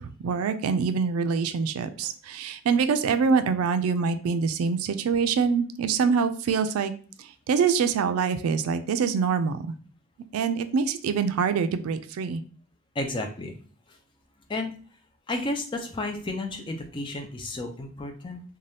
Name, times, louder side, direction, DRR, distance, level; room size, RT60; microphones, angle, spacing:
voice 1, 0.0-6.9 7.5-9.6 10.3-12.4, right 5 dB, 80° right, 11 dB, 0.3 m, -25 dB
voice 2, 13.0-13.5 14.5-14.7 15.3-18.4, left 2 dB, 20° left, 5 dB, 0.3 m, -32 dB
2.6 x 2.2 x 3.3 m, 0.42 s
head